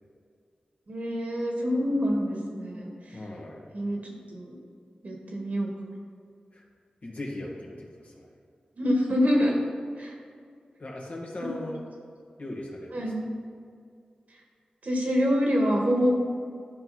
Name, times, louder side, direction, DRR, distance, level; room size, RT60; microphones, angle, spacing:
voice 1, 0.9-3.2 3.7-4.5 5.0-5.7 8.8-9.6 10.0-10.1 12.9-13.2 14.8-16.1, equal, 65° right, 0 dB, 1.7 m, -26 dB
voice 2, 3.1-3.7 6.5-6.6 7.0-8.3 10.0-10.1 10.8-11.8 12.4-13.0, left 1 dB, 60° left, -2 dB, 1.6 m, -38 dB
11.0 x 4.7 x 4.2 m, 2.2 s
cardioid pair, 50°, 3 cm